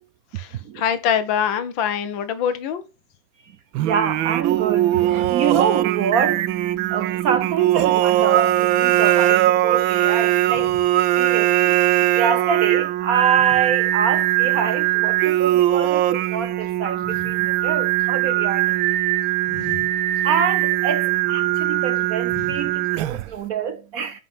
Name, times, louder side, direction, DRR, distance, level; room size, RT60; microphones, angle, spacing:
voice 1, 0.3-2.8 19.5-19.9 22.3-22.6, left 8 dB, 80° left, 1.6 m, -25 dB
Singing, 3.7-23.4, right 14 dB, 85° right, 1.3 m, -20 dB
voice 2, 3.8-10.8 11.1-11.8 12.1-18.8 20.2-24.2, right 7 dB, 65° right, 0.9 m, -26 dB
5.6 x 5.3 x 5.5 m
omnidirectional pair, 2.1 m